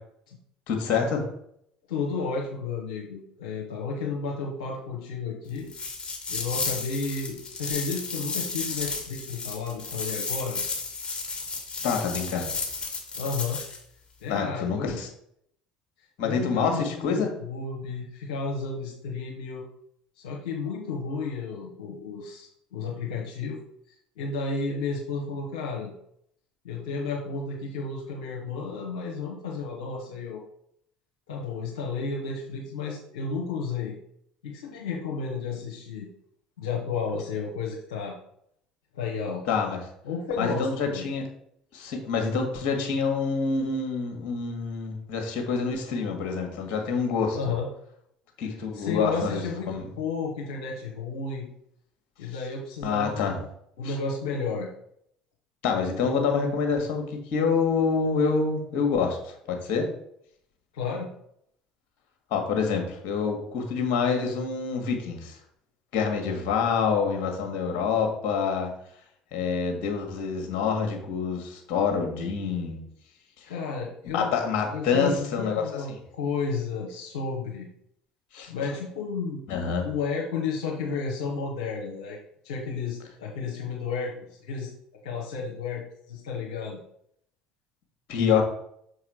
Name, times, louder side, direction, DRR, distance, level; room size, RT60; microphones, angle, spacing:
voice 1, 0.7-1.2 11.8-12.5 14.3-15.1 16.2-17.3 39.4-39.8 40.4-41.3 41.7-47.4 48.4-49.8 52.8-53.4 53.8-54.0 55.6-59.9 62.3-65.4 65.9-68.7 69.3-72.8 73.4-73.5 74.1-75.8 78.3-78.5 79.5-79.9 88.1-88.4, left 5 dB, 55° left, 3 dB, 1.6 m, -27 dB
voice 2, 1.9-5.7 6.3-10.6 13.1-13.6 14.2-15.0 16.2-19.6 20.1-23.6 23.9-25.9 26.6-30.4 31.3-33.9 34.4-36.1 36.6-38.2 38.9-39.4 40.0-41.1 47.3-47.7 48.7-51.5 52.2-53.5 53.8-54.7 60.7-61.1 73.5-74.3 74.7-77.7 78.5-82.2 82.4-84.7 85.0-86.8, left 4 dB, 70° left, -3 dB, 1.2 m, -32 dB
sound 1, 5.7-13.8, left 4 dB, 25° left, 1.9 m, -33 dB
6.5 x 4.8 x 4.6 m, 0.72 s
figure-of-eight pair, 60°, 4 cm